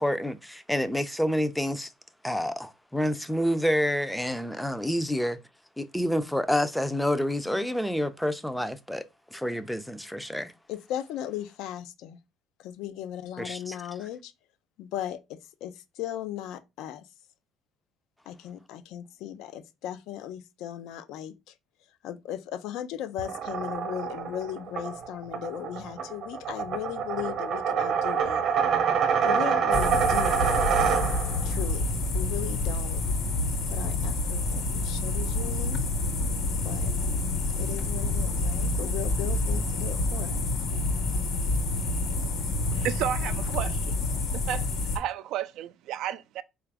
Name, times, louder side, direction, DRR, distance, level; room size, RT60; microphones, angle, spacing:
voice 1, 0.0-1.9 2.2-5.4 5.8-9.0 9.3-10.5 13.4-13.8, equal, ahead, 0.4 m, -28 dB
voice 2, 10.7-12.2 12.6-14.3 14.8-17.0 18.3-21.5 22.0-28.6 29.2-30.6 31.4-33.0 33.6-35.8 36.6-36.9 37.6-40.4, left 11 dB, 75° left, 0.5 m, -37 dB
sound 1, 23.2-31.5, right 7 dB, 50° right, 0.9 m, -26 dB
sound 2, 29.7-45.0, left 2 dB, 55° left, 1.2 m, -28 dB
voice 3, 42.7-43.9 44.3-44.7 44.9-46.4, right 11 dB, 70° right, 0.3 m, -32 dB
3.8 x 2.4 x 3.4 m
cardioid pair, 105°, 0 cm